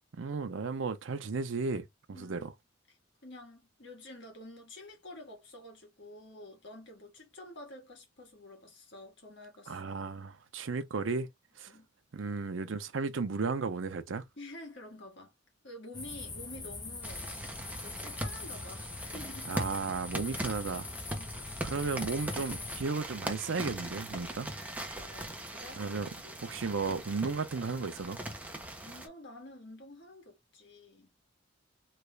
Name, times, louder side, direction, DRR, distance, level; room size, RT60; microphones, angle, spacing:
voice 1, 0.1-2.5 9.7-11.3 11.6-11.7 12.1-14.2 19.4-20.9 21.6-24.5 25.8-26.1 26.4-28.2, right 4 dB, 70° right, 0.6 m, -34 dB
voice 2, 2.1-2.5 2.9-9.8 11.7-11.9 14.4-15.3 15.6-17.3 17.7-19.5 21.1-21.4 24.9-25.8 26.2-26.4 28.8-31.1, left 1 dB, 65° left, 1.6 m, -49 dB
sound 1, 15.9-22.8, left 3 dB, 20° left, 0.9 m, -42 dB
sound 2, 17.0-29.1, right 1 dB, 10° right, 0.7 m, -41 dB
3.3 x 2.5 x 3.1 m
head